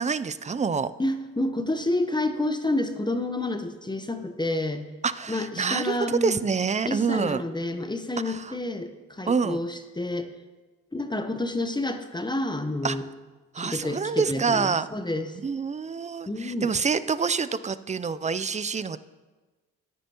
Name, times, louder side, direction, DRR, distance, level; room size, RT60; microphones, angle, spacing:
voice 1, 0.0-0.9 5.0-7.4 8.2-8.5 9.3-9.6 12.8-13.0 13.5-14.9 15.4-19.0, right 5 dB, 20° right, 15 dB, 0.4 m, -27 dB
voice 2, 1.0-4.8 5.3-6.4 6.8-10.3 10.9-13.0 13.6-15.4 16.3-16.7, left 2 dB, 10° left, 8 dB, 0.9 m, -29 dB
14.0 x 10.0 x 2.9 m, 1.3 s
supercardioid pair, 55°, 36 cm